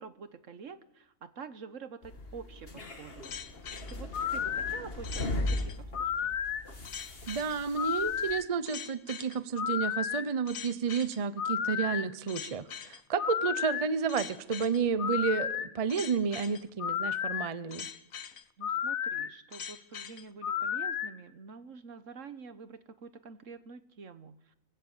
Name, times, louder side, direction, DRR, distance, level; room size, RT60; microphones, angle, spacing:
voice 1, 0.0-3.3 3.9-6.4 18.6-24.5, right 5 dB, 65° right, 11 dB, 1.5 m, -47 dB
sound 1, 2.0-8.4, left 1 dB, 45° left, 2.1 m, -38 dB
sound 2, 3.2-21.1, left 8 dB, 80° left, 1.4 m, -34 dB
voice 2, 7.3-17.9, right 6 dB, 30° right, 13 dB, 0.8 m, -31 dB
24.0 x 16.0 x 7.3 m, 0.87 s
omnidirectional pair, 1.4 m